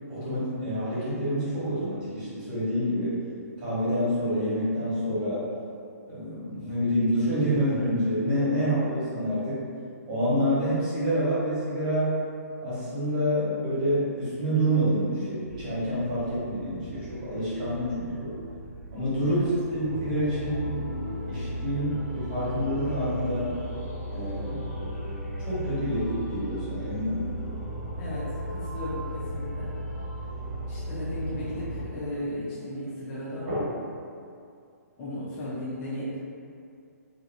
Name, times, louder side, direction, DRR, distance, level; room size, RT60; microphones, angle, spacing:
voice 1, 0.1-3.2 3.6-5.4 6.1-9.6 10.1-12.2 12.6-18.3 18.9-20.7 21.1-23.5 24.1-24.7 25.4-27.3 33.4-33.6, equal, 30° right, -11 dB, 1.3 m, -27 dB
sound 1, 15.5-31.8, equal, 40° left, 1.4 m, -36 dB
voice 2, 28.7-29.7 30.7-33.5 35.0-36.1, left 1 dB, 20° left, -10 dB, 0.5 m, -35 dB
2.6 x 2.6 x 2.4 m, 2.4 s
hypercardioid pair, 160°, 9 cm